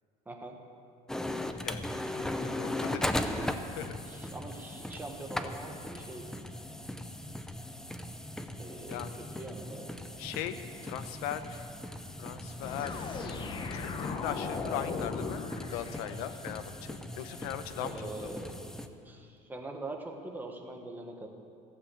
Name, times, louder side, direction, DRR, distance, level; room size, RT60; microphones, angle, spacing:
voice 1, 0.2-0.6 4.1-6.4 8.6-9.1 9.4-9.9 17.8-21.3, right 2 dB, 10° right, 2 dB, 1.4 m, -43 dB
sound 1, 1.1-18.9, left 1 dB, 5° left, 0.6 m, -38 dB
voice 2, 2.5-3.9 8.9-9.2 10.2-11.7 12.2-13.0 13.6-15.4 15.7-18.3, left 10 dB, 90° left, 9 dB, 0.9 m, -39 dB
sound 2, 12.6-16.6, left 4 dB, 30° left, 1.0 m, -37 dB
15.5 x 8.3 x 8.4 m, 2.5 s
cardioid pair, 150°, 15 cm